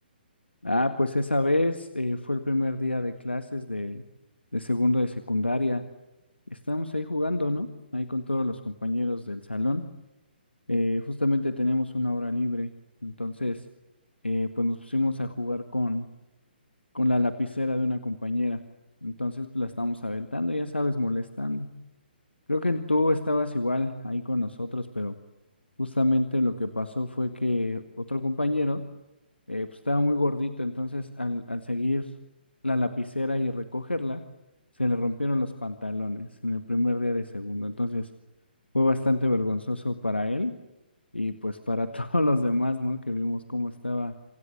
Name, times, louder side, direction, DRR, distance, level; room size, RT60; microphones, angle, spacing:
voice 1, 0.6-4.0 4.5-5.8 6.5-9.9 10.7-12.7 13.0-13.6 14.2-16.1 16.9-18.6 19.0-21.7 22.5-25.2 25.8-28.9 29.5-32.1 32.6-34.2 34.8-38.1 38.7-40.5 41.1-44.1, left 2 dB, 85° left, 9 dB, 1.8 m, -27 dB
28.0 x 26.0 x 8.0 m, 0.93 s
figure-of-eight pair, 130°, 6 cm